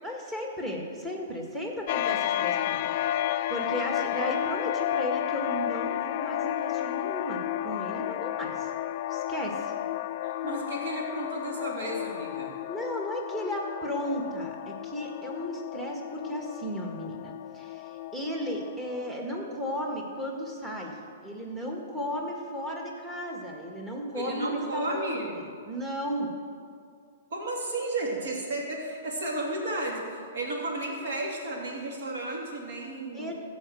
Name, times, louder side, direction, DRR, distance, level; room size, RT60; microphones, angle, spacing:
voice 1, 0.0-2.9 3.5-8.7 9.1-9.7 12.7-21.0 21.2-26.3 33.1-33.3, equal, 10° right, 0 dB, 1.9 m, -34 dB
sound 1, 1.9-19.1, left 12 dB, 50° left, 0.3 m, -32 dB
voice 2, 10.2-12.5 24.1-25.3 27.3-33.3, right 2 dB, 70° right, -2 dB, 3.0 m, -33 dB
15.5 x 5.3 x 6.4 m, 2.2 s
hypercardioid pair, 135°, 0 cm